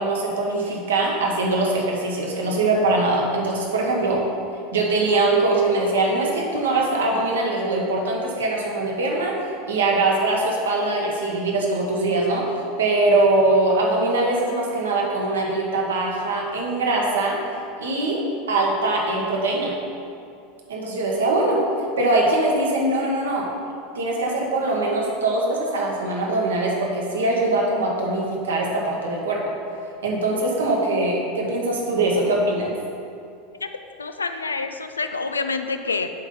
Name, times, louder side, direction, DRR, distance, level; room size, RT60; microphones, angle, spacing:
voice 1, 0.0-4.2 4.7-9.4 9.6-12.4 12.8-17.4 17.8-18.2 18.5-19.7 20.7-21.6 22.0-23.4 23.9-29.4 30.0-32.7, right 2 dB, 80° right, -2 dB, 1.2 m, -22 dB
voice 2, 34.0-36.1, left 4 dB, 90° left, 8 dB, 0.4 m, -27 dB
7.3 x 3.7 x 5.4 m, 2.5 s
hypercardioid pair, 85°, 0 cm